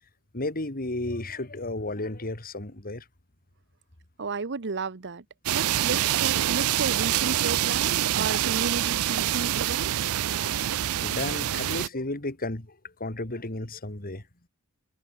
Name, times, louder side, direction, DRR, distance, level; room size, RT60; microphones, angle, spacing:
voice 1, 0.3-3.0 10.3-10.6 10.9-14.2, left 2 dB, 40° left, 2.9 m, -33 dB
voice 2, 4.2-5.2 5.5-10.1, right 4 dB, 55° right, 0.9 m, -33 dB
sound 1, 5.5-11.9, right 12 dB, 70° right, 0.5 m, -26 dB
head